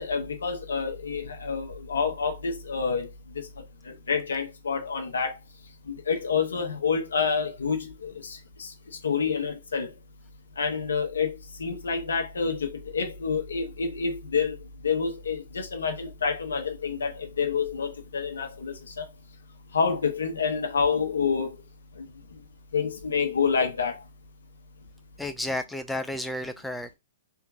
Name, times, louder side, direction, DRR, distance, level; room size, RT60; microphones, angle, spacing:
voice 1, 0.0-3.1 3.3-3.4 3.8-5.4 5.9-8.7 9.0-9.9 10.6-14.6 14.8-19.1 19.7-21.6 22.0-22.1 22.7-24.0, left 5 dB, 70° left, 1.1 m, -28 dB
voice 2, 25.2-26.9, left 1 dB, 5° left, 0.3 m, -32 dB
3.5 x 2.9 x 3.7 m
figure-of-eight pair, 115°, 0 cm